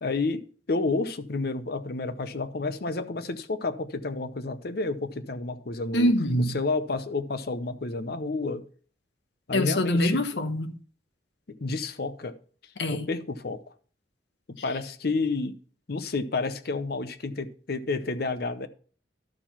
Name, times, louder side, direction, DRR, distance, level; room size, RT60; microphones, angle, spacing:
voice 1, 0.0-6.1 6.5-8.6 9.5-10.3 11.5-12.4 12.9-13.6 14.5-15.6 15.9-18.7, left 3 dB, 60° left, 0.7 m, -30 dB
voice 2, 5.9-6.6 9.5-10.8 12.8-13.1, equal, 75° left, 0.9 m, -24 dB
12.0 x 4.6 x 5.6 m
head